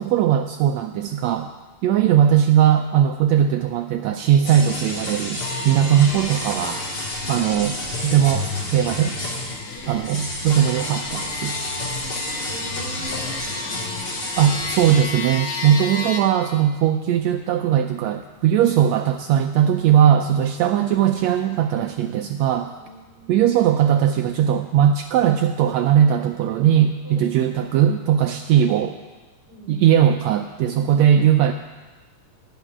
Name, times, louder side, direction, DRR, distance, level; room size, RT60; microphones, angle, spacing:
voice 1, 0.0-1.5 1.8-6.8 7.3-9.2 9.9-11.5 14.4-22.7 23.3-29.0 29.7-31.5, right 10 dB, 85° right, 6 dB, 1.5 m, -19 dB
sound 1, 4.4-15.0, left 2 dB, 30° left, 3.1 m, -30 dB
sound 2, 5.4-16.2, left 4 dB, 80° left, 3.2 m, -34 dB
voice 2, 9.7-10.1 11.8-14.6 15.8-16.1 22.8-23.3 27.0-27.2 29.5-29.9, left 1 dB, 20° right, -5 dB, 4.9 m, -41 dB
14.5 x 7.3 x 9.8 m, 1.3 s
omnidirectional pair, 3.7 m